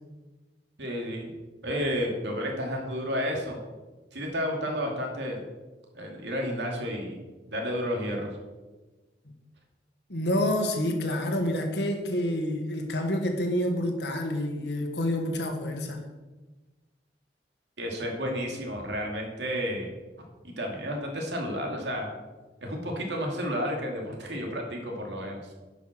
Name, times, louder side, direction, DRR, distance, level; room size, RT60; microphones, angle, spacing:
voice 1, 0.8-1.4 1.6-3.6 4.1-5.4 5.9-7.2 7.5-8.4 17.8-19.9 20.4-22.1 22.6-25.4, equal, 85° right, 1 dB, 2.4 m, -31 dB
voice 2, 10.1-16.0, left 1 dB, 80° left, 4 dB, 1.7 m, -28 dB
10.5 x 5.9 x 6.2 m, 1.2 s
head